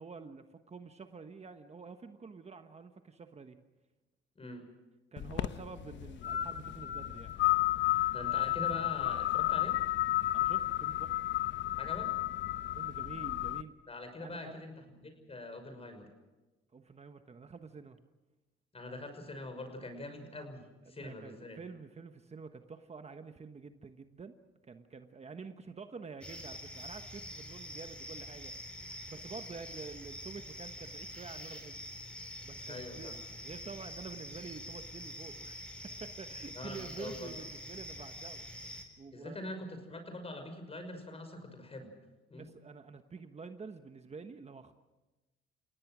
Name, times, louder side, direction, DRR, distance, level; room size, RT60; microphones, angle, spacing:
voice 1, 0.0-3.6 5.1-7.3 10.3-11.2 12.7-13.8 14.2-14.6 16.7-18.0 20.9-24.4 24.6-28.5 29.1-31.8 32.4-35.6 36.0-38.4 39.0-39.4 42.3-44.7, right 5 dB, 35° right, 7 dB, 1.3 m, -48 dB
voice 2, 4.4-4.7 8.1-9.8 11.8-12.1 13.9-16.1 18.7-21.6 32.7-33.2 36.5-37.3 39.1-41.9 42.3-42.5, left 2 dB, 30° left, 7 dB, 6.0 m, -44 dB
sound 1, 5.2-13.6, left 15 dB, 65° left, 0.9 m, -32 dB
sound 2, 26.2-38.8, equal, 5° left, 4.3 m, -46 dB
30.0 x 17.5 x 6.3 m, 1.1 s
cardioid pair, 90°, 20 cm